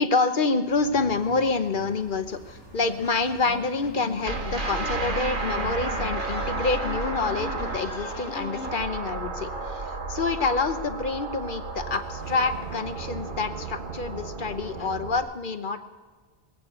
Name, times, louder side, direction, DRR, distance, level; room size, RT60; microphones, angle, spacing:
voice 1, 0.0-15.8, left 4 dB, 50° left, 10 dB, 1.0 m, -27 dB
sound 1, 0.6-5.8, right 1 dB, 80° right, 4.1 m, -48 dB
sound 2, 2.8-8.8, left 5 dB, 80° left, 1.3 m, -40 dB
sound 3, 4.2-15.2, right 3 dB, 45° right, 1.5 m, -32 dB
20.5 x 8.3 x 8.2 m, 1.4 s
omnidirectional pair, 1.2 m